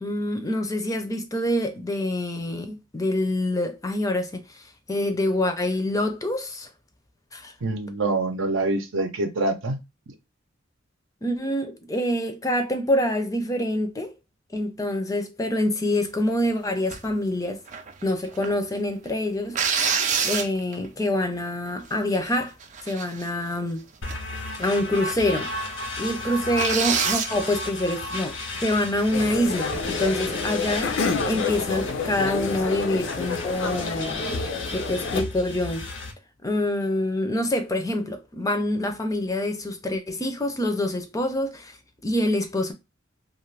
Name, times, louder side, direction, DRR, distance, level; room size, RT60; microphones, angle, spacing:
voice 1, 0.0-4.4 4.9-6.7 7.3-7.5 11.2-14.1 14.5-17.6 18.0-19.6 20.2-22.5 22.8-23.8 24.6-25.6 26.0-30.9 31.2-34.3 34.7-35.9 36.4-41.7 42.0-42.7, left 1 dB, 15° left, 0.5 m, -26 dB
voice 2, 7.6-9.8, right 2 dB, 75° right, 0.6 m, -25 dB
sound 1, 16.9-17.1 17.7-18.6 19.5-20.9 21.5-21.6 21.9-22.3 22.6-23.5 24.1-24.3 24.6-24.7 25.3-25.4 25.7-25.8 26.5-27.4 29.7-30.0, right 6 dB, 40° right, 0.4 m, -27 dB
sound 2, 24.0-36.1, left 2 dB, 90° left, 1.1 m, -34 dB
sound 3, 29.1-35.2, left 4 dB, 70° left, 0.5 m, -29 dB
2.5 x 2.5 x 3.2 m
head